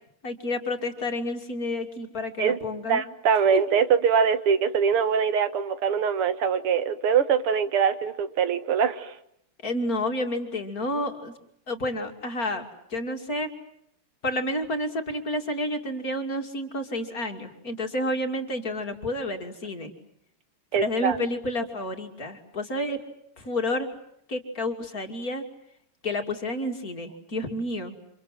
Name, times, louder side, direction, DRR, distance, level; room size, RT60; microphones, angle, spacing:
voice 1, 0.2-3.0 3.5-3.6 9.6-11.3 11.7-13.5 14.2-19.9 20.8-23.0 23.4-23.9 24.3-25.4 26.0-27.9, left 1 dB, 40° left, 5 dB, 3.1 m, -30 dB
voice 2, 2.9-9.1 20.7-21.2, right 7 dB, 85° right, 11 dB, 2.4 m, -23 dB
29.5 x 27.0 x 7.5 m, 0.74 s
omnidirectional pair, 2.4 m